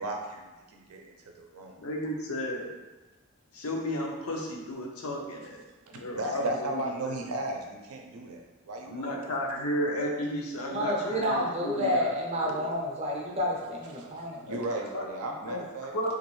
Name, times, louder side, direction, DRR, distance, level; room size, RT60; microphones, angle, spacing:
voice 1, 0.0-1.8 6.1-9.2 14.0-16.1, right 2 dB, 80° right, 2 dB, 0.5 m, -36 dB
voice 2, 1.8-2.7 3.5-5.6 5.9-6.5 6.7-7.1 8.9-12.7 14.5-14.6 14.9-15.0 15.5-15.6 15.9-16.1, equal, 80° left, 0 dB, 0.6 m, -33 dB
voice 3, 10.7-14.4, equal, 30° right, -2 dB, 0.5 m, -29 dB
3.0 x 2.5 x 3.1 m, 1.2 s
head